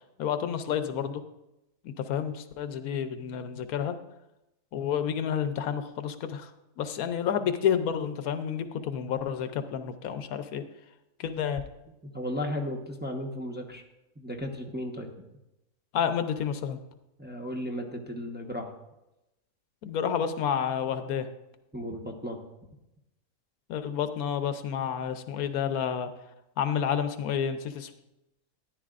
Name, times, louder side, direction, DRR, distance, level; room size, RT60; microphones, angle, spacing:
voice 1, 0.2-1.2 2.0-3.9 4.7-6.5 6.8-10.6 11.2-11.6 15.9-16.8 19.8-21.3 23.7-26.1 26.6-27.9, left 8 dB, 80° left, 9 dB, 1.2 m, -30 dB
voice 2, 12.1-13.8 14.2-15.1 17.2-18.7 21.7-22.4, equal, 10° right, 1 dB, 0.8 m, -35 dB
13.5 x 10.5 x 2.5 m, 0.93 s
omnidirectional pair, 1.5 m